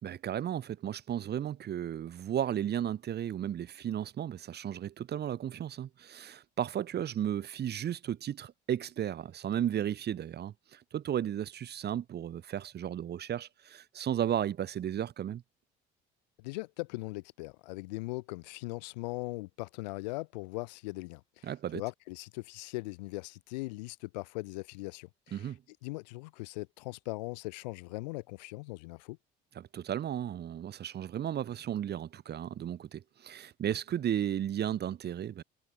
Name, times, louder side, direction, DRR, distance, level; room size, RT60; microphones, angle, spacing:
voice 1, 0.0-15.4 21.4-21.8 25.3-25.6 29.6-35.4, right 10 dB, 50° right, 2.0 m, -34 dB
voice 2, 16.4-25.5 25.8-29.2, left 24 dB, 90° left, 2.6 m, -40 dB
supercardioid pair, 75°, 21 cm